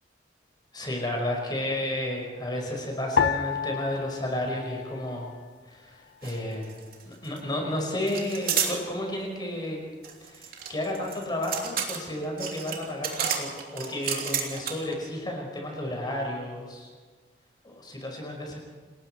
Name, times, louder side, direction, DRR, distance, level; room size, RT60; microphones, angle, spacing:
voice 1, 0.7-5.3 5.7-6.7 7.1-9.8 10.2-16.9 17.6-18.6, left 1 dB, 25° left, 1 dB, 5.3 m, -32 dB
sound 1, 3.2-5.7 5.9-6.9 7.5-7.9, left 7 dB, 65° left, 0.6 m, -31 dB
sound 2, 6.2-6.4 6.6-7.4 8.1-8.8 10.0-14.9, right 7 dB, 50° right, 3.3 m, -31 dB
28.5 x 20.5 x 4.6 m, 1.5 s
head